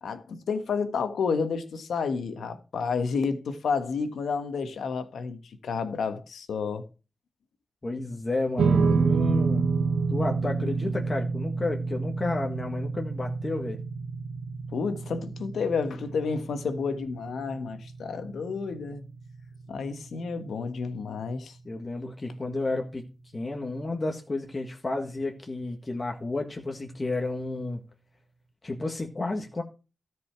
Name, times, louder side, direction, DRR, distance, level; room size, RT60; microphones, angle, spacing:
voice 1, 0.0-6.9 14.7-19.0 19.7-21.6, left 5 dB, 90° left, 1.4 m, -30 dB
voice 2, 7.8-9.6 10.1-13.8 21.6-23.0 23.3-27.8 28.6-29.6, left 2 dB, 30° left, 1.6 m, -31 dB
sound 1, 8.6-21.1, right 4 dB, 85° right, 0.8 m, -29 dB
13.5 x 5.3 x 5.9 m
wide cardioid pair, 100°, 0 cm